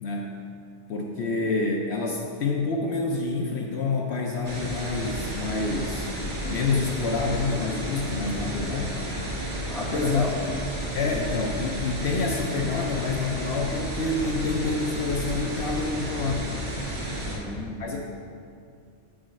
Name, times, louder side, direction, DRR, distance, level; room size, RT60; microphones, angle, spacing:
voice 1, 0.0-0.5 0.9-6.1 6.5-9.3 9.8-10.2 10.9-16.5 17.8-18.0, left 3 dB, 65° left, 1 dB, 1.0 m, -28 dB
sound 1, 4.4-17.4, right 1 dB, 50° right, 2.1 m, -32 dB
voice 2, 6.4-6.8 9.7-10.8 17.2-17.8, left 1 dB, ahead, -6 dB, 1.5 m, -35 dB
8.6 x 6.3 x 5.2 m, 2.4 s
omnidirectional pair, 1.2 m